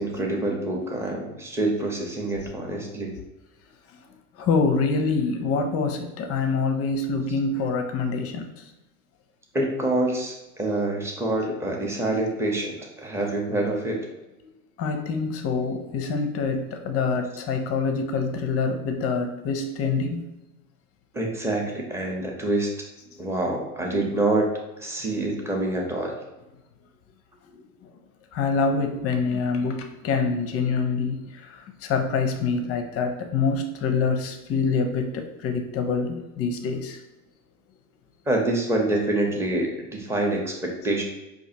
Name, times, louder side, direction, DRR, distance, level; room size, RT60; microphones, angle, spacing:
voice 1, 0.0-3.1 9.5-14.1 21.1-22.7 23.2-24.5 24.8-26.1 38.3-41.0, right 2 dB, 5° right, 0 dB, 0.7 m, -26 dB
voice 2, 4.4-8.5 14.8-20.3 27.5-27.6 28.3-37.0, left 4 dB, 35° left, 5 dB, 0.5 m, -25 dB
4.8 x 2.5 x 2.7 m, 1.0 s
hypercardioid pair, 95°, 44 cm